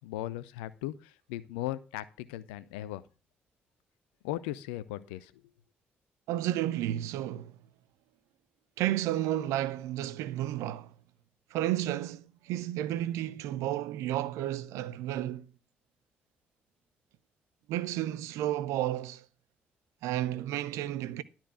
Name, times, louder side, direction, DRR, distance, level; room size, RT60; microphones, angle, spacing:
voice 1, 0.0-3.0 4.2-5.4, left 14 dB, 70° left, 0.6 m, -38 dB
voice 2, 6.3-7.6 8.8-10.9 11.5-15.5 17.7-19.2 20.0-21.2, right 13 dB, 65° right, 0.6 m, -32 dB
12.0 x 4.5 x 7.5 m
figure-of-eight pair, 40°, 6 cm